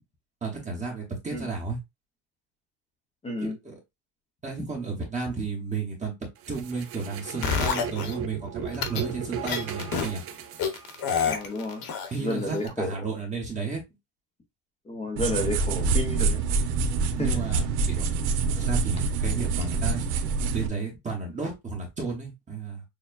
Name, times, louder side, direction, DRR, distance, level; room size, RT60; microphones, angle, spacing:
voice 1, 0.4-1.8 3.4-3.8 4.4-6.1 6.5-10.2 12.1-13.8 17.2-18.1 18.6-22.8, right 4 dB, 15° right, 0.9 m, -33 dB
voice 2, 3.2-3.5 11.3-11.8 12.2-12.9 14.9-16.4 17.2-17.3, left 1 dB, 15° left, 0.6 m, -31 dB
sound 1, 6.4-11.4, right 7 dB, 35° right, 0.4 m, -36 dB
sound 2, 7.4-8.1 8.7-9.0 9.5-10.1 10.6-12.3 12.7-12.8, left 6 dB, 45° left, 1.1 m, -27 dB
sound 3, 15.2-20.7, right 4 dB, 85° right, 1.1 m, -26 dB
6.5 x 2.2 x 2.5 m
cardioid pair, 155°, 48 cm